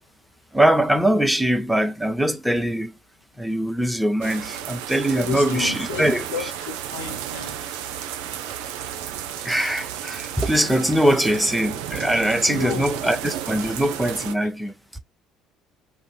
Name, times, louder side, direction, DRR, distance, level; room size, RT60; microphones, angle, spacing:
voice 1, 0.5-3.0 3.4-6.2 9.4-14.7, right 1 dB, ahead, 0.6 m, -22 dB
sound 1, 4.2-14.3, right 10 dB, 70° right, 0.4 m, -33 dB
voice 2, 5.2-6.0 6.3-7.6 12.5-12.9 13.6-13.7, left 7 dB, 80° left, 0.5 m, -32 dB
2.5 x 2.1 x 3.1 m
hypercardioid pair, 60°, 0 cm